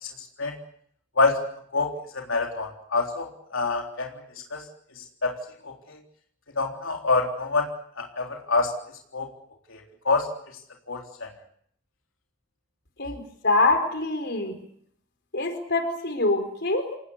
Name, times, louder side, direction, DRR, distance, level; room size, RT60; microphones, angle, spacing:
voice 1, 1.7-4.1 4.5-4.6 5.0-5.3 5.6-6.0 6.6-7.7 8.0-8.7 9.1-9.3 9.7-9.8 10.1-10.3 10.9-11.3, left 3 dB, 85° left, 1 dB, 3.7 m, -26 dB
voice 2, 13.0-14.6 15.3-17.0, left 2 dB, 55° left, 7 dB, 4.5 m, -25 dB
28.5 x 18.5 x 8.3 m, 0.66 s
head